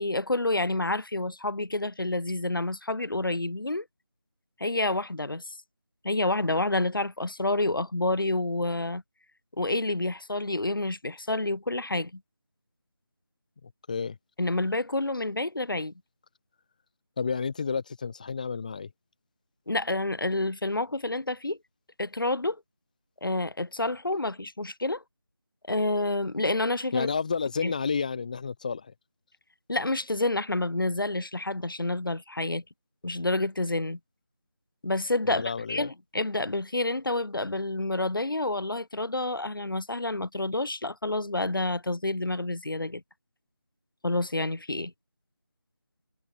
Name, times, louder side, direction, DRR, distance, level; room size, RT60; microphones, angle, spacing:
voice 1, 0.0-3.8 4.6-5.5 6.0-9.0 9.6-12.2 14.4-15.9 19.7-21.6 22.0-22.6 23.2-25.0 25.7-27.1 27.6-27.7 29.7-32.6 33.0-34.0 34.8-43.0 44.0-44.9, left 2 dB, 75° left, 5.0 m, -28 dB
voice 2, 13.6-14.2 17.2-18.9 26.9-28.9 35.3-35.9, left 5 dB, 20° left, 3.2 m, -31 dB
figure-of-eight pair, 175°, 12 cm